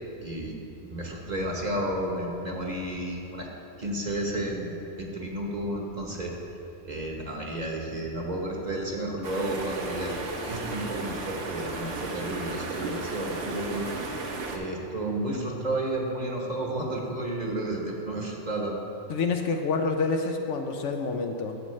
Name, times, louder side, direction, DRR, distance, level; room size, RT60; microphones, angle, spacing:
voice 1, 0.2-0.6 0.8-3.5 3.8-6.3 6.8-10.1 10.4-14.1 14.5-18.8, right 1 dB, 35° right, -1 dB, 1.1 m, -32 dB
sound 1, 9.2-14.6, right 3 dB, 70° right, 1.2 m, -35 dB
voice 2, 19.1-21.6, left 4 dB, 70° left, 5 dB, 0.9 m, -28 dB
12.0 x 7.5 x 3.2 m, 2.8 s
omnidirectional pair, 1.3 m